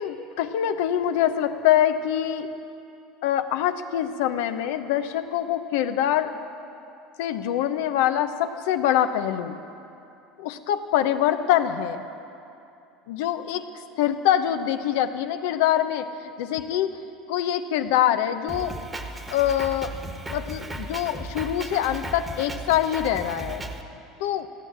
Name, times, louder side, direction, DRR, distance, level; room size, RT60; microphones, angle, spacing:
voice 1, 0.0-2.5 3.2-6.4 7.2-9.6 10.4-12.0 13.1-13.7 14.0-17.0 17.3-18.8 19.3-19.9 20.3-23.6 24.2-24.5, left 11 dB, 75° left, 9 dB, 0.8 m, -24 dB
Drum kit, 18.5-23.8, right 1 dB, 15° right, 1.3 m, -36 dB
15.0 x 9.4 x 8.8 m, 2.7 s
hypercardioid pair, 90°, 0 cm